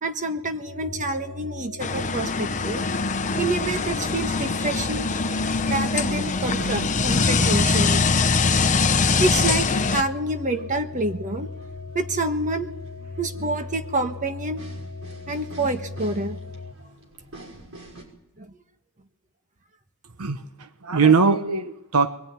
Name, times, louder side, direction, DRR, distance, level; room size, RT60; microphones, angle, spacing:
voice 1, 0.0-2.9 3.4-5.1 5.7-8.0 9.2-11.5 11.9-12.7 13.2-14.6 15.3-16.4 18.4-18.5, right 2 dB, 35° right, 7 dB, 1.4 m, -27 dB
sound 1, 0.6-16.7, left 3 dB, 55° left, 1.3 m, -38 dB
sound 2, 1.8-10.0, left 4 dB, 35° left, 0.9 m, -23 dB
sound 3, 5.2-18.0, right 2 dB, 65° right, 6.1 m, -47 dB
voice 2, 20.2-22.1, right 5 dB, 85° right, 9 dB, 1.1 m, -21 dB
23.0 x 18.0 x 9.5 m, 0.83 s
head